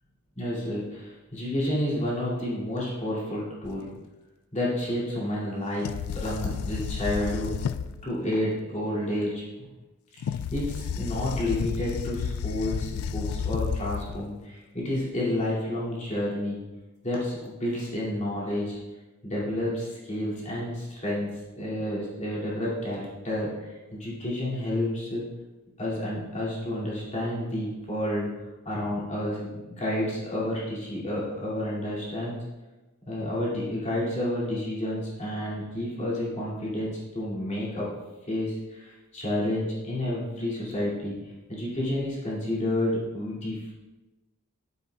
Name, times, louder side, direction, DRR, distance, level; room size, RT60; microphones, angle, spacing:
voice 1, 0.4-3.9 4.5-5.9 6.1-7.6 8.0-9.7 10.2-16.6 17.0-18.8 19.2-23.5 23.9-25.2 25.8-28.3 28.6-32.4 33.1-37.9 38.3-41.2 41.5-43.7, left 1 dB, 30° left, -7 dB, 2.4 m, -30 dB
sound 1, 3.6-3.7 5.8-8.0 10.2-14.4, left 7 dB, 70° left, 0.3 m, -32 dB
9.6 x 7.4 x 2.3 m, 1.1 s
head